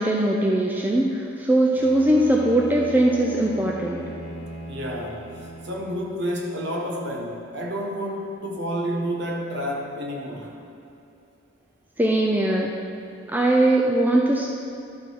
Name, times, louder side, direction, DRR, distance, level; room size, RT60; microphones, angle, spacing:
voice 1, 0.0-4.0 12.0-12.7 13.3-14.5, right 1 dB, 10° right, -1 dB, 0.4 m, -20 dB
Bowed string instrument, 1.7-6.2, equal, 55° left, 1.0 m, -38 dB
voice 2, 4.7-10.6, equal, 55° right, 0 dB, 1.1 m, -30 dB
12.0 x 4.9 x 4.6 m, 2.7 s
head